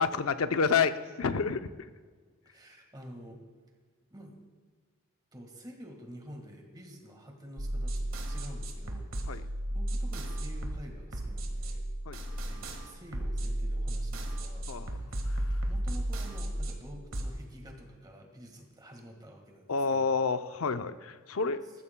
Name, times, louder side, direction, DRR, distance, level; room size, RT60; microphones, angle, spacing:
voice 1, 0.0-1.7 9.3-9.4 12.1-12.2 14.7-15.6 19.7-21.6, left 5 dB, 75° left, 10 dB, 0.6 m, -29 dB
voice 2, 2.4-3.4 4.1-4.4 5.3-11.8 12.4-15.1 15.6-20.1, equal, 20° right, 2 dB, 1.6 m, -49 dB
sound 1, 7.6-17.3, right 1 dB, 65° right, 1.6 m, -34 dB
20.5 x 14.5 x 2.2 m, 1.5 s
head